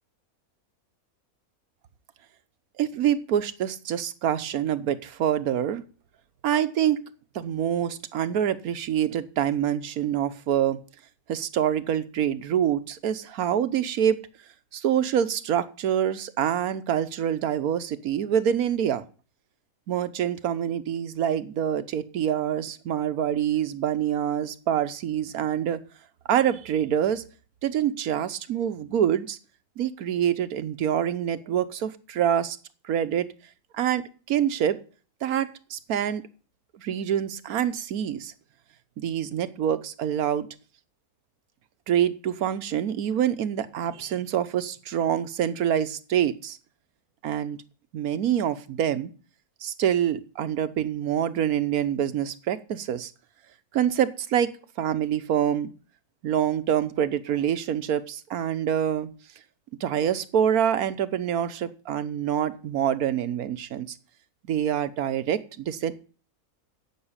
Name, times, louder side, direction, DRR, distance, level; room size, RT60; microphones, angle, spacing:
voice 1, 2.8-5.8 6.4-7.0 7.3-10.8 11.3-14.2 14.7-19.0 19.9-25.8 26.3-27.2 27.6-29.4 29.8-32.6 32.9-33.3 33.7-34.8 35.2-36.2 36.7-38.3 39.0-40.5 41.9-46.6 47.2-47.6 47.9-49.1 49.6-53.1 53.7-54.5 54.8-55.7 56.2-59.1 59.8-64.0 64.5-65.9, right 9 dB, 85° right, 13 dB, 1.3 m, -26 dB
9.9 x 7.7 x 8.8 m, 0.40 s
omnidirectional pair, 1.5 m